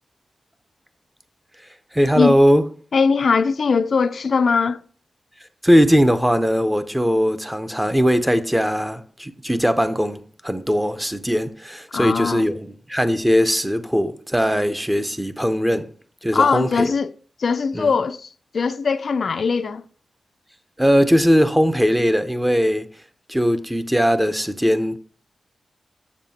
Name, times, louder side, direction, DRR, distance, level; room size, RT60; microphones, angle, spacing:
voice 1, 1.9-2.7 5.6-15.9 16.2-16.9 17.7-17.9 20.8-22.9 23.3-25.0, equal, 5° right, 0.6 m, -19 dB
voice 2, 2.9-4.8 11.9-12.5 16.3-17.1 17.4-19.8, left 5 dB, 60° left, 0.3 m, -20 dB
7.3 x 7.1 x 2.7 m
wide cardioid pair, 110°, 0 cm